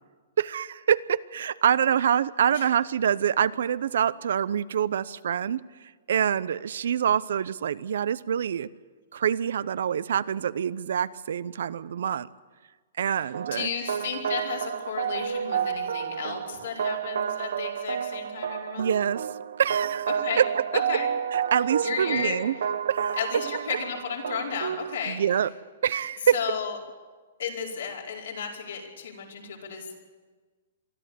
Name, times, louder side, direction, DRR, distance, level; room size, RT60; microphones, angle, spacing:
voice 1, 0.4-5.6 6.1-8.7 9.1-12.3 13.0-13.7 18.8-19.3 19.6-20.1 20.4-20.5 21.3-22.5 22.9-23.2 25.1-25.5 25.8-26.4, right 8 dB, 70° right, 17 dB, 0.7 m, -25 dB
voice 2, 13.0-18.9 20.1-20.4 20.7-21.1 21.8-22.6 23.1-25.2 26.3-26.8 27.4-29.9, left 7 dB, 70° left, -1 dB, 4.9 m, -33 dB
sound 1, 13.3-25.0, right 8 dB, 85° right, 1.1 m, -31 dB
24.0 x 13.5 x 8.5 m, 1.4 s
hypercardioid pair, 170°, 0 cm